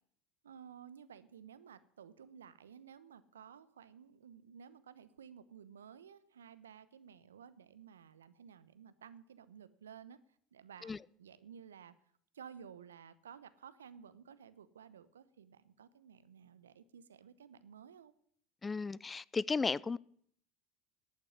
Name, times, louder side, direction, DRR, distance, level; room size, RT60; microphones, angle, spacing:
voice 1, 0.4-10.2 10.5-11.9 12.3-18.1, right 8 dB, 80° right, 0.9 m, -55 dB
voice 2, 18.6-20.0, left 4 dB, 20° left, 0.5 m, -34 dB
11.0 x 8.7 x 9.6 m
figure-of-eight pair, 75°, 0 cm